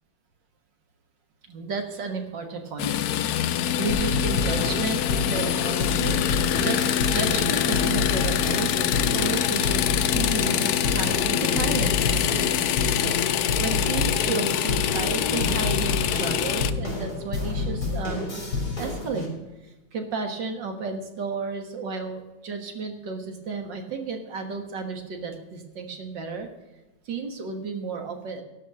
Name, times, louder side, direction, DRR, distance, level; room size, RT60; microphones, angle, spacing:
voice 1, 1.5-3.4 3.8-12.1 13.6-18.3 18.8-19.3 19.6-26.5 27.1-28.4, right 4 dB, 60° right, 5 dB, 2.0 m, -32 dB
sound 1, 2.8-16.7, left 10 dB, 75° left, 0.8 m, -25 dB
sound 2, 3.9-19.3, left 3 dB, 45° left, 4.3 m, -29 dB
12.0 x 5.5 x 8.4 m, 1.1 s
omnidirectional pair, 2.3 m